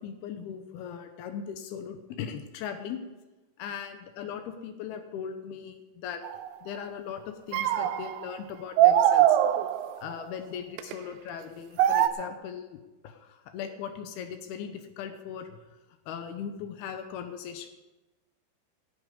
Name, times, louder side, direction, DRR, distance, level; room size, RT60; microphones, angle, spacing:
voice 1, 0.0-3.0 3.6-6.2 6.6-9.4 10.0-12.8 13.0-15.5 16.1-17.7, left 7 dB, 85° left, 6 dB, 2.2 m, -39 dB
sound 1, 6.2-6.5 7.5-8.4 8.8-10.1 10.8-10.9 11.8-12.1, right 11 dB, 90° right, 3.3 m, -22 dB
19.0 x 8.4 x 5.3 m, 1.1 s
omnidirectional pair, 5.8 m